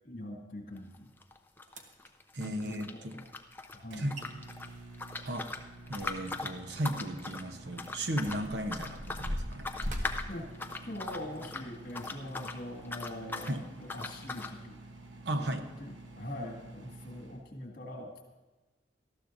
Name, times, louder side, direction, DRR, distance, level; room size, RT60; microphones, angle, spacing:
voice 1, 0.0-1.1 2.4-3.2 3.7-4.1 10.3-10.5 10.8-14.8 15.3-18.2, left 1 dB, 50° left, 1 dB, 2.1 m, -43 dB
sound 1, 0.8-3.8 4.1-12.6 12.8-13.5 13.9-14.5, left 3 dB, 10° left, 0.5 m, -40 dB
sound 2, 1.2-1.3 1.7-2.1 3.8-3.9 4.1-4.3 4.6-6.4 6.7-6.9 7.6-11.3 11.9-12.2 12.8-12.9, equal, 40° right, 1.2 m, -40 dB
voice 2, 2.3-3.2 4.0-4.2 5.2-5.5 5.9-9.7 13.5-13.6 15.2-15.7, right 1 dB, 65° right, 7 dB, 0.9 m, -35 dB
Microwave oven, 2.3-17.4, right 2 dB, 85° right, 1.2 m, -50 dB
19.0 x 13.5 x 2.7 m, 1.2 s
head